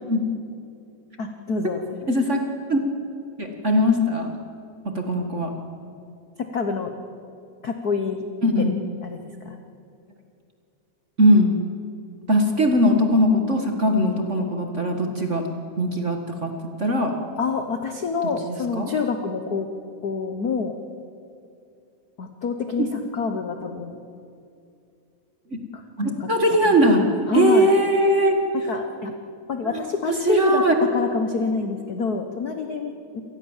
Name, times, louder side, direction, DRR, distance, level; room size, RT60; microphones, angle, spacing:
voice 1, 1.2-2.1 6.4-6.9 7.6-8.3 9.0-9.6 17.4-19.7 20.0-20.8 22.2-24.0 25.7-26.3 26.6-26.7 27.3-27.7 28.5-29.1 29.5-33.2, left 5 dB, 75° left, 6 dB, 0.8 m, -27 dB
voice 2, 2.1-2.4 2.7-2.8 3.4-4.3 4.8-5.5 8.4-8.7 11.2-11.6 12.3-15.4 15.8-16.5 16.8-17.1 18.4-18.9 22.8-22.9 25.5-25.6 26.0-27.0 27.3-28.4 29.7-29.8 30.2-30.7, equal, 30° right, 4 dB, 1.4 m, -20 dB
27.5 x 19.0 x 7.3 m, 2.6 s
omnidirectional pair, 3.4 m